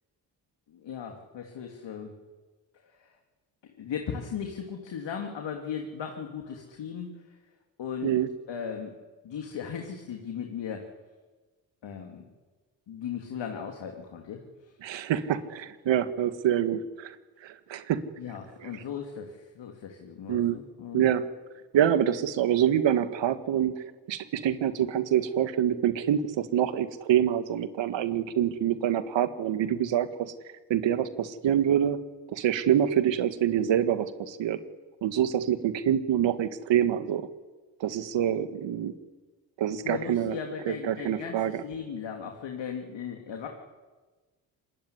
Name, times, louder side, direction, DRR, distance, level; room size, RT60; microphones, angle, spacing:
voice 1, 0.7-2.1 2.7-3.2 3.6-7.5 7.8-8.1 8.5-8.9 9.2-10.9 11.8-12.2 12.9-14.7 18.2-21.1 39.8-43.5, left 7 dB, 70° left, 3 dB, 3.2 m, -37 dB
voice 2, 14.8-17.2 17.4-18.0 20.3-20.6 20.9-21.2 21.7-30.3 30.7-32.0 32.3-34.6 35.0-37.3 37.8-38.9 39.6-40.3 40.7-41.6, right 10 dB, 75° right, 11 dB, 1.9 m, -26 dB
25.5 x 21.0 x 9.9 m, 1.3 s
supercardioid pair, 50°, 45 cm